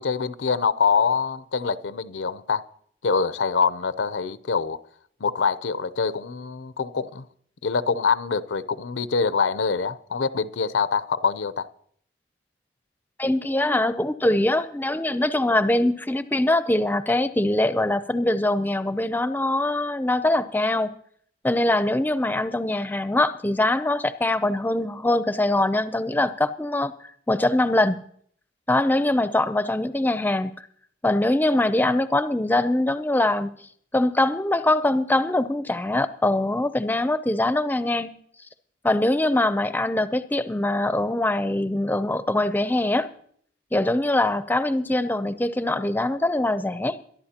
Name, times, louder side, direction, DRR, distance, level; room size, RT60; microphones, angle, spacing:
voice 1, 0.0-2.6 3.0-4.8 5.2-7.2 7.6-11.7, left 5 dB, 90° left, 14 dB, 0.6 m, -24 dB
voice 2, 13.2-20.9 21.4-26.9 27.3-28.0 28.7-30.5 31.0-33.5 33.9-38.1 38.8-43.1 43.7-47.0, left 1 dB, 10° left, 12 dB, 0.5 m, -23 dB
22.5 x 11.5 x 2.9 m, 0.62 s
head